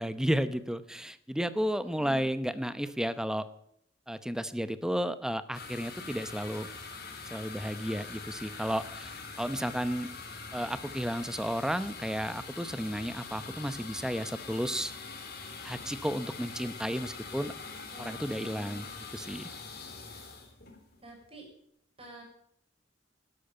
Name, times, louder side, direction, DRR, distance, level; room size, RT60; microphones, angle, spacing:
voice 1, 0.0-3.5 4.1-6.7 7.3-9.1 9.4-10.1 10.5-14.9 15.6-17.5 18.0-18.9 19.1-19.5, equal, 5° right, 13 dB, 0.8 m, -32 dB
voice 2, 1.8-2.3 17.9-18.8 20.0-20.3 21.0-21.5 22.0-22.2, right 1 dB, 30° right, 0 dB, 6.4 m, -48 dB
sound 1, 5.5-21.2, left 4 dB, 60° left, 3.8 m, -44 dB
12.5 x 12.0 x 9.0 m, 0.71 s
head